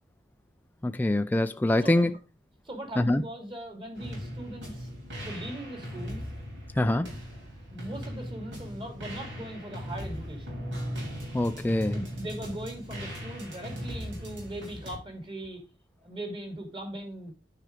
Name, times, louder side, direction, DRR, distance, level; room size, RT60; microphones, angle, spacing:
voice 1, 0.8-2.1 3.0-3.2 6.8-7.1 11.3-12.0, left 1 dB, 10° left, 0.3 m, -24 dB
voice 2, 2.6-4.9 5.2-6.2 7.7-10.7 11.9-15.6 16.0-17.3, right 1 dB, 30° right, 2.6 m, -39 dB
sound 1, 4.0-15.0, equal, 80° right, 4.0 m, -38 dB
9.5 x 4.9 x 4.9 m
head